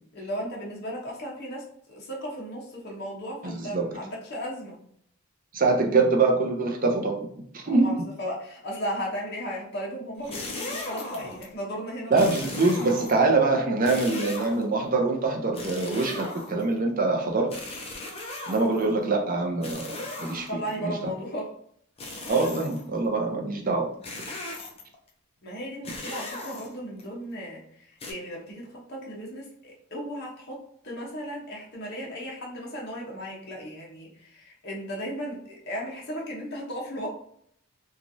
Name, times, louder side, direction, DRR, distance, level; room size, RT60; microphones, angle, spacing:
voice 1, 0.1-4.8 7.6-12.3 20.5-21.5 25.4-37.1, equal, 50° left, -3 dB, 0.8 m, -36 dB
voice 2, 3.4-3.9 5.5-7.2 7.5-7.9 12.1-17.5 18.5-19.9 20.2-20.5 20.8-21.1 22.3-23.9, right 3 dB, 40° right, 1 dB, 0.5 m, -24 dB
sound 1, 10.2-11.5 12.1-13.3 13.8-14.8 15.5-16.8 17.5-18.9 19.6-20.7 22.0-22.9 24.0-25.0 25.8-27.0 28.0-28.1, left 2 dB, 25° left, 0.4 m, -37 dB
3.0 x 2.4 x 2.6 m, 0.66 s
head